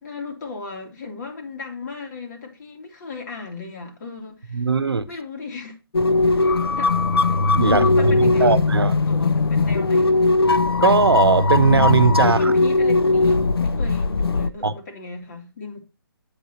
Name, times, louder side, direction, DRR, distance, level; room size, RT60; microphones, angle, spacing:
voice 1, 0.0-4.6 5.1-5.8 6.3-6.9 7.7-10.2 12.2-15.8, left 4 dB, 50° left, 3.0 m, -36 dB
voice 2, 4.5-5.0 7.5-8.1 8.4-8.9 10.8-12.5 14.6-14.7, right 4 dB, 85° right, 0.8 m, -19 dB
sound 1, 5.9-14.5, left 3 dB, 80° left, 0.6 m, -19 dB
8.3 x 8.2 x 3.0 m
figure-of-eight pair, 140°, 13 cm